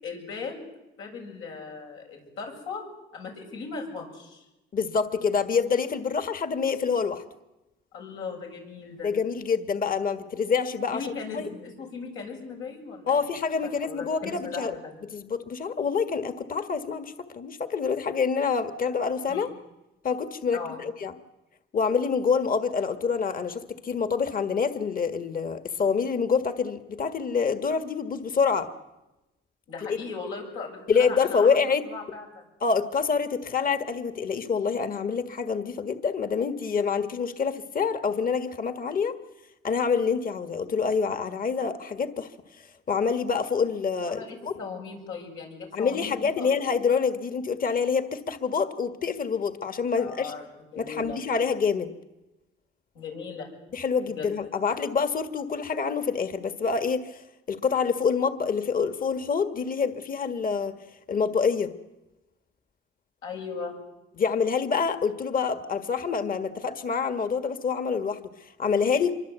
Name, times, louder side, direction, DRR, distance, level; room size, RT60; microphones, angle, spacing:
voice 1, 0.0-0.7 1.0-2.8 3.1-4.4 7.9-9.1 10.9-13.3 13.8-15.0 19.3-19.5 20.5-20.8 29.7-31.5 31.8-32.5 44.0-46.5 50.0-51.2 52.9-53.6 54.0-54.3 63.2-63.8, left 5 dB, 90° left, 0 dB, 7.7 m, -38 dB
voice 2, 4.7-7.2 9.0-11.0 11.3-11.4 13.1-14.7 15.1-19.5 20.0-21.1 21.7-28.7 29.8-30.0 30.9-31.8 32.6-39.1 39.6-42.3 42.5-42.6 42.9-44.2 45.7-50.3 50.8-51.9 53.7-57.2 57.5-60.7 61.1-61.7 64.2-69.2, left 5 dB, 45° left, 9 dB, 1.8 m, -26 dB
25.5 x 23.5 x 8.3 m, 0.99 s
cardioid pair, 90°, 20 cm